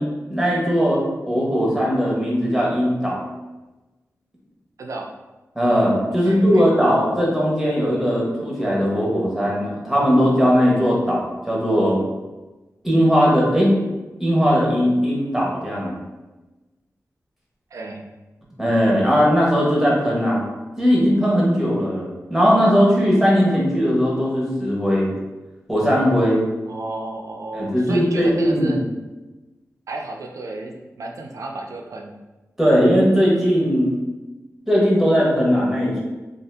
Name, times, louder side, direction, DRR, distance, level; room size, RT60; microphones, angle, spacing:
voice 1, 0.0-3.2 5.5-12.0 12.8-13.7 14.2-16.0 18.6-20.4 20.8-25.1 25.7-26.4 27.5-28.8 32.6-33.9 34.7-36.0, equal, 5° right, -5 dB, 1.0 m, -19 dB
voice 2, 4.8-5.1 6.1-6.7 17.7-18.1 26.7-28.8 29.9-32.2, right 2 dB, 70° right, 2 dB, 0.4 m, -32 dB
2.7 x 2.5 x 3.3 m, 1.1 s
wide cardioid pair, 115°, 6 cm